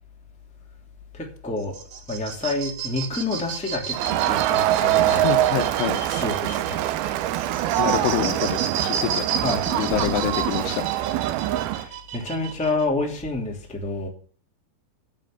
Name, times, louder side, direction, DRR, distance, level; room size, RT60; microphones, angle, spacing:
voice 1, 1.1-1.7 2.1-5.3 6.0-6.8 9.4-10.2 11.6-14.1, left 3 dB, 5° left, 1.5 m, -29 dB
sound 1, 1.6-12.9, right 7 dB, 60° right, 2.6 m, -33 dB
Crowd, 3.9-11.9, right 14 dB, 80° right, 2.3 m, -24 dB
voice 2, 5.1-6.0 7.7-9.2 9.7-10.8, left 12 dB, 80° left, 2.9 m, -27 dB
8.9 x 7.6 x 7.8 m
omnidirectional pair, 4.9 m